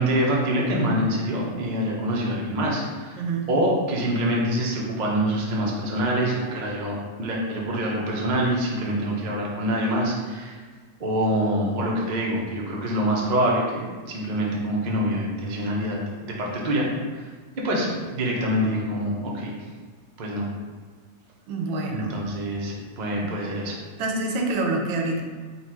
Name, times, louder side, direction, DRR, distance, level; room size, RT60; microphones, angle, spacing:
voice 1, 0.0-3.2 3.5-10.6 11.0-13.8 14.1-16.0 16.2-16.9 17.1-17.3 17.6-19.5 20.2-20.4 21.9-23.8, right 1 dB, 70° right, -3 dB, 0.4 m, -25 dB
voice 2, 3.2-3.5 21.5-22.2 24.0-25.2, right 2 dB, 90° right, 2 dB, 1.4 m, -26 dB
4.3 x 2.5 x 4.4 m, 1.4 s
omnidirectional pair, 2.0 m